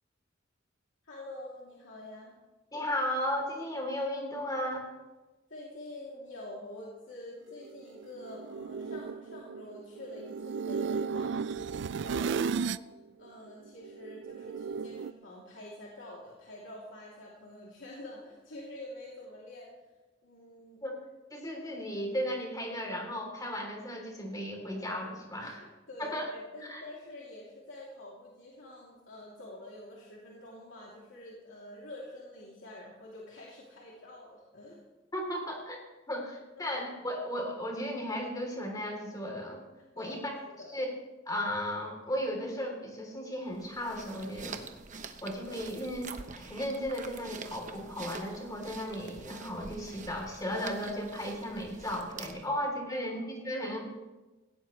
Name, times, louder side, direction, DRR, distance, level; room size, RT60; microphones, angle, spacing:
voice 1, 1.0-2.3 5.5-11.5 12.0-12.7 13.2-19.7 20.2-20.8 25.4-34.9 36.6-36.7 39.9-40.2 40.6-40.8 52.5-52.6 52.9-53.2, left 1 dB, 80° left, -5 dB, 3.0 m, -47 dB
voice 2, 2.7-4.9 20.8-21.0 21.3-25.7 26.0-26.3 26.7-26.8 35.1-35.8 36.1-39.6 40.0-40.3 40.7-40.9 41.3-44.6 45.2-53.8, equal, 20° left, 1 dB, 3.4 m, -35 dB
sound 1, 7.6-12.9 13.3-15.1, right 5 dB, 65° right, 0.4 m, -35 dB
sound 2, 43.5-52.6, right 4 dB, 40° right, 1.0 m, -46 dB
18.0 x 17.0 x 3.3 m, 1.1 s
head